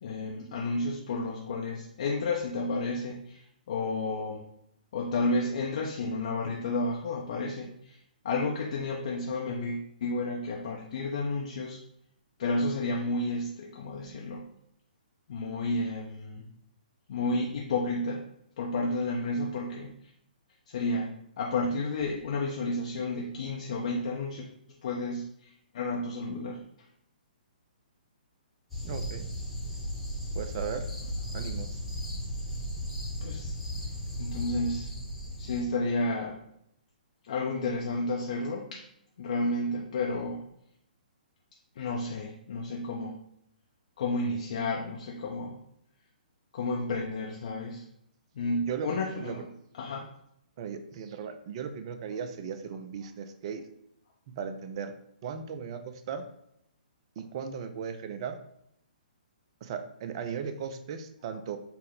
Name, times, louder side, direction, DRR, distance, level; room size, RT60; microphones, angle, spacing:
voice 1, 0.0-4.4 4.9-8.0 8.2-11.8 12.4-14.4 15.3-16.4 17.1-18.2 18.6-20.1 20.7-24.5 24.8-26.6 33.2-33.6 34.2-34.9 35.4-36.4 37.2-38.8 39.2-40.4 41.8-43.2 44.0-45.6 46.5-47.9 48.4-49.5 49.8-50.1, left 2 dB, 50° left, -2 dB, 0.5 m, -31 dB
sound 1, 28.7-35.6, equal, ahead, 1.0 m, -36 dB
voice 2, 28.8-29.3 30.4-30.9 31.3-31.8 48.6-49.4 50.6-53.6 54.3-54.9 55.2-56.2 57.2-58.4 59.6-61.6, right 7 dB, 35° right, 9 dB, 0.4 m, -37 dB
4.1 x 2.1 x 3.7 m, 0.76 s
figure-of-eight pair, 125°, 5 cm